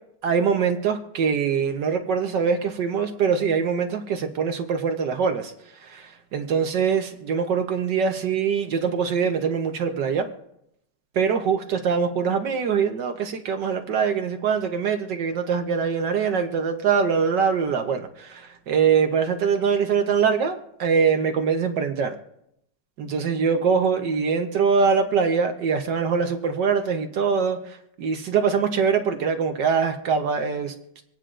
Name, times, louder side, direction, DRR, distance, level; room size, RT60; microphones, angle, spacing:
voice 1, 0.2-6.0 6.3-10.3 11.1-22.1 23.0-30.7, right 6 dB, 70° right, 5 dB, 1.4 m, -23 dB
26.5 x 8.9 x 2.5 m, 0.79 s
omnidirectional pair, 2.1 m